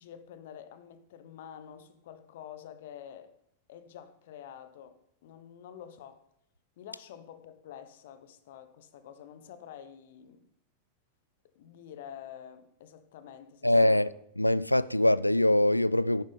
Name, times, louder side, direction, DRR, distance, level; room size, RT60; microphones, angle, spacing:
voice 1, 0.0-3.3 3.7-6.3 6.8-10.5 11.5-14.1, left 9 dB, 55° left, 1.1 m, -48 dB
voice 2, 13.6-14.1 14.4-16.2, left 1 dB, 85° left, 0.3 m, -23 dB
10.5 x 9.1 x 5.2 m
figure-of-eight pair, 90°, 0 cm